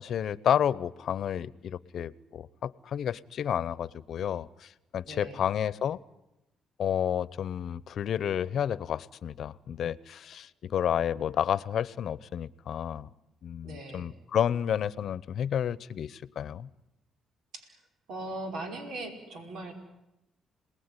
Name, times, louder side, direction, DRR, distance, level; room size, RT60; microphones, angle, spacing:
voice 1, 0.0-6.0 6.8-13.1 13.4-16.7, left 9 dB, 65° left, 19 dB, 0.9 m, -31 dB
voice 2, 5.1-5.4 13.6-14.1 17.5-17.8 18.1-19.7, right 2 dB, 75° right, 4 dB, 5.0 m, -39 dB
28.0 x 19.5 x 9.9 m, 0.93 s
cardioid pair, 95°, 0 cm